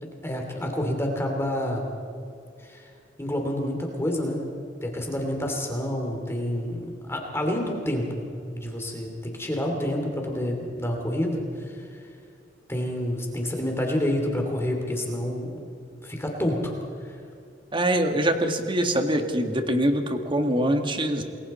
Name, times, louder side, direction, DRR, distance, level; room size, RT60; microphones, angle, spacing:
voice 1, 0.0-1.9 2.6-2.9 3.2-4.4 4.8-8.2 8.5-12.0 12.7-15.5 16.0-16.7 17.0-17.2, left 1 dB, 15° left, 1 dB, 2.7 m, -28 dB
voice 2, 17.7-21.2, right 1 dB, 25° right, 5 dB, 1.8 m, -24 dB
28.0 x 21.5 x 4.3 m, 2.5 s
head